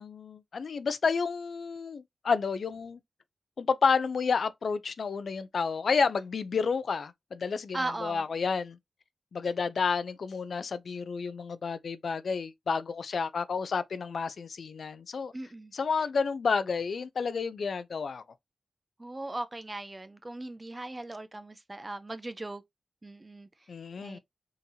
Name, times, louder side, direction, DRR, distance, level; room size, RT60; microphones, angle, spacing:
voice 1, 0.0-3.0 3.6-8.8 9.3-15.3 15.7-18.2 23.7-24.2, left 5 dB, 60° left, 0.4 m, -30 dB
voice 2, 7.7-8.2 15.3-15.7 19.0-22.6 23.0-23.5 24.0-24.2, right 2 dB, 20° right, 0.4 m, -38 dB
3.7 x 2.7 x 2.6 m
wide cardioid pair, 170°, 0 cm